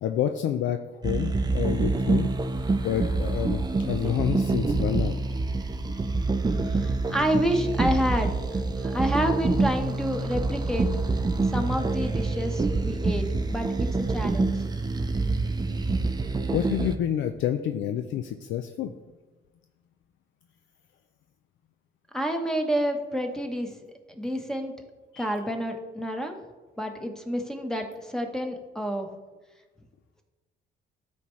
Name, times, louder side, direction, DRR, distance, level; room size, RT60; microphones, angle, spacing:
voice 1, 0.0-2.3 2.8-5.2 16.5-18.9 25.1-25.3, left 10 dB, 70° left, 7 dB, 0.4 m, -28 dB
sound 1, 1.0-16.9, right 3 dB, 20° right, 0.6 m, -26 dB
voice 2, 6.7-10.9 11.4-14.6 22.1-23.7 24.2-24.7 25.2-26.4 26.8-29.1, equal, 5° left, 3 dB, 1.0 m, -29 dB
12.5 x 4.4 x 3.1 m, 1.2 s
cardioid pair, 90°, 20 cm